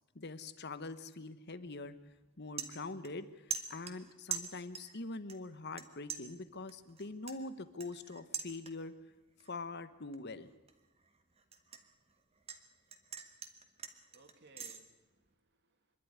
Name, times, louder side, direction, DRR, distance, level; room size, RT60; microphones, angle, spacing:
voice 1, 0.1-2.0 2.4-8.9 9.5-10.5, left 3 dB, 50° left, 13 dB, 1.1 m, -44 dB
sound 1, 1.6-1.9 2.2-3.2 3.5-5.0 5.3-5.8 6.1-9.0 9.4-9.7 10.1-12.6 12.9-14.8, right 6 dB, 25° right, 1.5 m, -43 dB
voice 2, 13.9-16.0, right 2 dB, 50° right, 5 dB, 2.6 m, -63 dB
25.5 x 11.5 x 9.8 m, 1.0 s
head